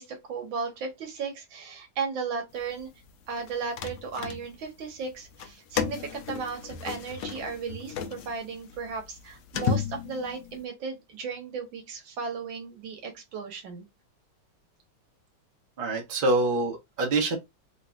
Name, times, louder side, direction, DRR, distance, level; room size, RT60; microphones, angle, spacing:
voice 1, 0.0-2.9 3.3-13.9, right 5 dB, 80° right, 1.7 m, -35 dB
sound 1, 3.4-4.8 5.3-10.6, left 7 dB, 75° left, 0.8 m, -33 dB
voice 2, 15.8-17.4, right 2 dB, 35° right, 0.9 m, -25 dB
3.9 x 2.7 x 2.3 m
omnidirectional pair, 2.1 m